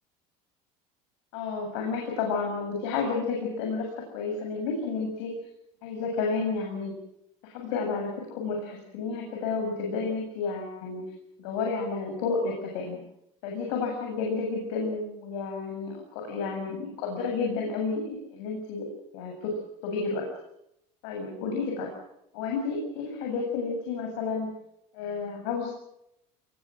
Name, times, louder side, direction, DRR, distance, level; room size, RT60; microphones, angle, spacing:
voice 1, 1.3-3.9 4.1-5.3 5.8-7.0 7.4-11.0 11.4-13.0 13.4-18.9 19.1-19.5 19.8-20.2 21.0-21.9 22.3-24.5 24.9-25.7, left 4 dB, 85° left, 1 dB, 7.7 m, -31 dB
28.0 x 21.5 x 6.2 m, 0.80 s
cardioid pair, 175°, 15 cm